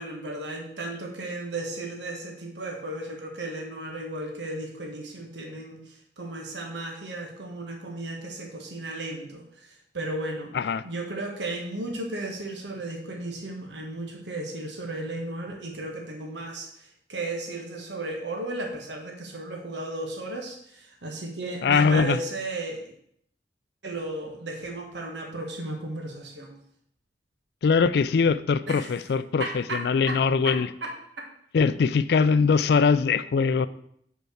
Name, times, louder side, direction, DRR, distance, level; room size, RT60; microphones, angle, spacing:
voice 1, 0.0-9.4 9.9-10.5 10.8-16.7 17.1-22.9 23.8-26.5 28.7-28.9 29.4-30.9, right 2 dB, 85° right, 1 dB, 1.3 m, -34 dB
voice 2, 21.6-22.2 27.6-30.7 31.5-33.7, left 5 dB, 65° left, 15 dB, 0.4 m, -22 dB
5.4 x 4.5 x 6.3 m, 0.68 s
head